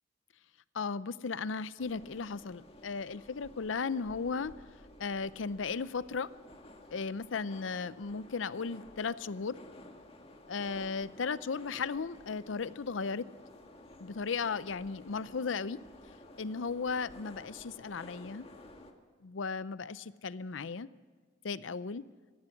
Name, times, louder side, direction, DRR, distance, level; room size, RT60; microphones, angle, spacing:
voice 1, 0.7-4.5 5.0-6.3 6.9-9.6 10.5-13.3 14.0-15.8 16.4-18.5 19.2-20.9 21.4-22.0, left 5 dB, 85° left, 17 dB, 0.6 m, -36 dB
sound 1, 1.8-18.9, left 1 dB, 30° left, 1.8 m, -53 dB
17.5 x 15.5 x 9.8 m, 1.5 s
head